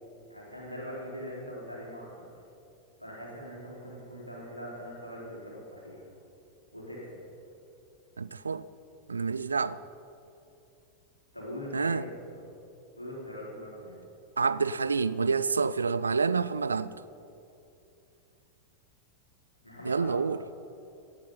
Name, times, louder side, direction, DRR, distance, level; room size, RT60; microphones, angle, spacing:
voice 1, 0.3-2.3 3.0-6.1 6.7-7.2 11.3-12.4 13.0-14.0 19.6-20.2, equal, 85° left, 3.9 m, -42 dB
voice 2, 8.2-8.6 9.1-9.8 11.7-12.1 14.4-16.9 19.8-20.4, right 5 dB, 75° right, 0.4 m, -28 dB
17.5 x 10.5 x 5.5 m
figure-of-eight pair, 90°, 0 cm